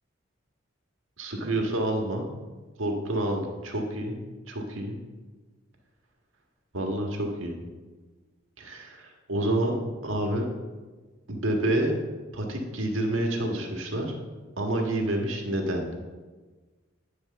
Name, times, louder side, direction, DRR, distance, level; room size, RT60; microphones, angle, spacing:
voice 1, 1.2-2.3 2.8-4.2 4.5-5.0 6.7-7.7 8.6-10.5 11.3-11.9 12.3-14.2 14.6-15.8, right 1 dB, 80° right, 2 dB, 1.5 m, -28 dB
10.0 x 4.7 x 6.7 m, 1.3 s
head